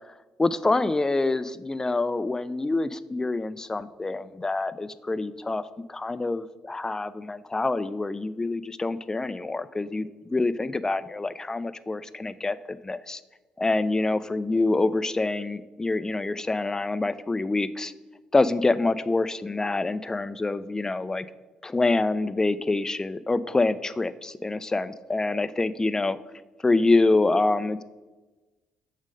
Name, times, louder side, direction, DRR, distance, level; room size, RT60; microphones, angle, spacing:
voice 1, 0.4-5.6 5.9-13.2 13.6-17.9 18.3-21.3 21.6-26.2 26.6-27.8, left 2 dB, 20° left, 14 dB, 0.4 m, -26 dB
6.3 x 3.7 x 6.2 m, 1.2 s
hypercardioid pair, 55°, 3 cm